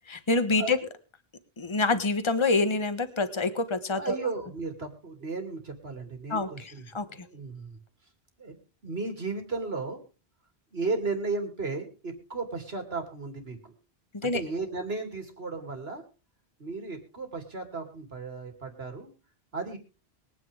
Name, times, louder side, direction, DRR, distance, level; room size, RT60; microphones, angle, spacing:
voice 1, 0.1-0.8 1.6-4.2 6.3-7.3 14.2-14.4, left 3 dB, 30° left, 10 dB, 1.3 m, -27 dB
voice 2, 4.0-7.8 8.4-10.0 10.7-13.7 14.2-16.0 16.6-19.1 19.5-19.8, right 3 dB, 75° right, 4 dB, 3.2 m, -35 dB
22.5 x 9.4 x 3.6 m, 0.34 s
omnidirectional pair, 1.1 m